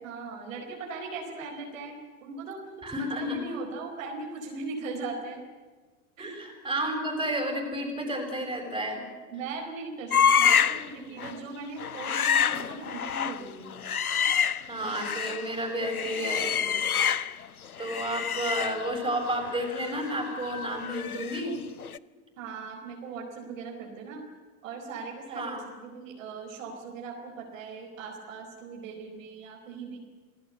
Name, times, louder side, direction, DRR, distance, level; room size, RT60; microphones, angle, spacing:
voice 1, 0.0-2.6 2.9-5.4 6.2-6.4 9.3-13.8 22.4-24.2 24.6-25.6 25.8-30.0, right 4 dB, 65° right, 2 dB, 4.5 m, -39 dB
voice 2, 2.8-3.4 6.2-9.0 14.7-16.9 17.8-21.6 25.3-25.7, right 1 dB, 10° right, 3 dB, 7.3 m, -31 dB
sound 1, 10.1-10.9 11.2-11.4 11.8-15.5 15.8-17.5 17.8-21.5 21.8-22.0, left 7 dB, 90° left, 0.7 m, -27 dB
28.0 x 18.0 x 8.0 m, 1.4 s
figure-of-eight pair, 85°, 42 cm